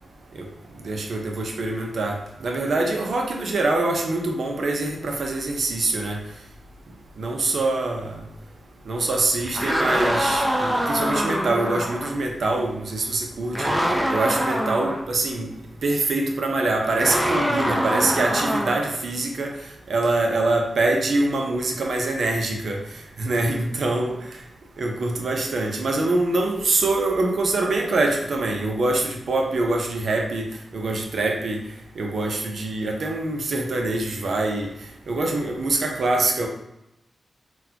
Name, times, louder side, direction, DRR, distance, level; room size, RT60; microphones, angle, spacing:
voice 1, 0.8-6.2 7.2-8.2 8.9-13.7 14.1-15.5 15.8-19.6 19.9-22.8 23.2-24.2 24.8-30.5 30.7-31.6 32.0-34.7 35.1-36.5, right 2 dB, 70° right, 2 dB, 0.6 m, -24 dB
sound 1, 9.4-12.1 13.5-15.0 17.0-18.9, equal, 10° right, 0.6 m, -24 dB
3.8 x 2.3 x 2.8 m, 0.86 s
supercardioid pair, 40°, 0 cm